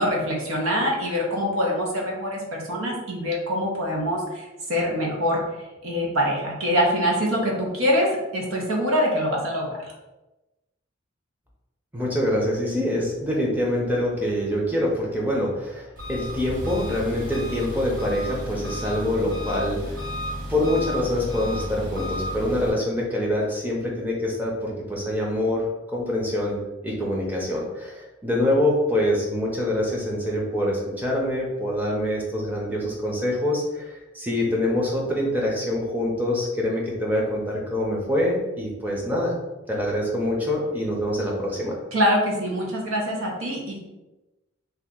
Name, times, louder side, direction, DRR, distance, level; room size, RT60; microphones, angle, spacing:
voice 1, 0.0-9.9 41.9-43.8, equal, 85° right, -2 dB, 0.8 m, -24 dB
voice 2, 11.9-20.0 20.5-39.3 39.7-41.8, left 1 dB, 10° right, -3 dB, 0.6 m, -25 dB
Engine, 16.0-22.7, equal, 40° right, 1.2 m, -33 dB
2.9 x 2.4 x 3.6 m, 1.0 s
head